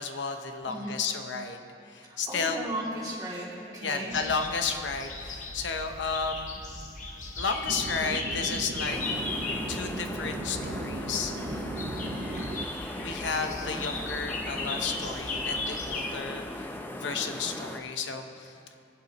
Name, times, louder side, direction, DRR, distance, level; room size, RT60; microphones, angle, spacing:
voice 1, 0.0-1.6 1.9-2.8 3.8-6.6 7.4-9.0 9.7-11.3 13.0-18.5, left 5 dB, 80° left, 5 dB, 0.8 m, -32 dB
voice 2, 2.0-4.1 11.3-11.6, right 1 dB, 20° right, -7 dB, 2.6 m, -36 dB
sound 1, 4.1-16.1, left 3 dB, 40° left, 1.0 m, -37 dB
sound 2, 7.7-12.7, right 2 dB, 50° right, 0.5 m, -37 dB
sound 3, 8.9-17.8, left 1 dB, 10° left, 0.5 m, -38 dB
20.5 x 7.9 x 3.0 m, 2.6 s
head